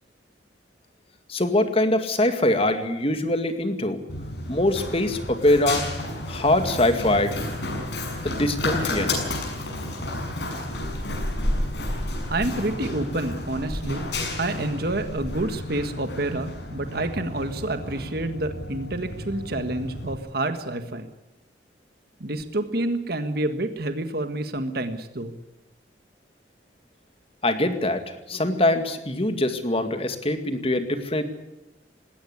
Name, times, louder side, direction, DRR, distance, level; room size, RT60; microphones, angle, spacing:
voice 1, 1.3-4.0 4.5-5.8 6.3-7.4 8.2-9.2 27.4-31.2, left 1 dB, 30° left, 8 dB, 2.2 m, -23 dB
Run, 4.1-20.1, left 1 dB, 70° left, 6.7 m, -31 dB
voice 2, 12.3-14.1 14.4-21.1 22.2-25.3, right 2 dB, 55° right, 8 dB, 1.6 m, -28 dB
20.0 x 17.5 x 9.8 m, 0.94 s
head